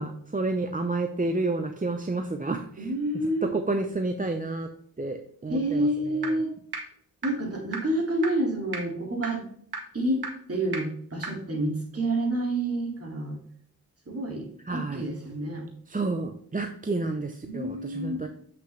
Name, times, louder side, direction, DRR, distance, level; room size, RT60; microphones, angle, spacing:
voice 1, 0.0-2.6 3.5-4.7 5.0-5.9 14.7-15.0 15.9-18.3, right 3 dB, 20° right, 5 dB, 0.7 m, -30 dB
voice 2, 2.8-3.5 5.5-6.5 7.2-9.5 9.9-13.4 14.1-15.7 17.4-18.2, right 1 dB, 40° right, 0 dB, 2.4 m, -28 dB
sound 1, 6.2-6.3 6.7-6.8 7.2-7.3 7.7-7.8 8.2-8.3 8.7-8.8 9.2-9.3 9.7-9.8 10.2-10.3 10.7-10.8 11.2-11.3, right 5 dB, 90° right, 1.7 m, -32 dB
7.9 x 5.9 x 3.3 m, 0.63 s
wide cardioid pair, 65°, 37 cm